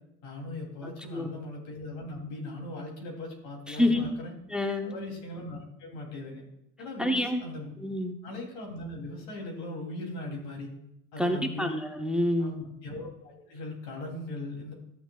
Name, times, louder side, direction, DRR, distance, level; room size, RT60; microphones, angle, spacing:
voice 1, 0.2-4.3 4.8-6.4 6.8-7.7 8.2-10.7 11.1-11.8 12.4-14.7, left 2 dB, 85° left, 0 dB, 3.1 m, -39 dB
voice 2, 0.8-1.3 3.7-4.2 4.5-5.0 7.0-7.4 7.8-8.1 11.2-12.6, left 1 dB, ahead, 5 dB, 0.7 m, -28 dB
14.0 x 7.1 x 2.4 m, 0.81 s
supercardioid pair, 95°, 35 cm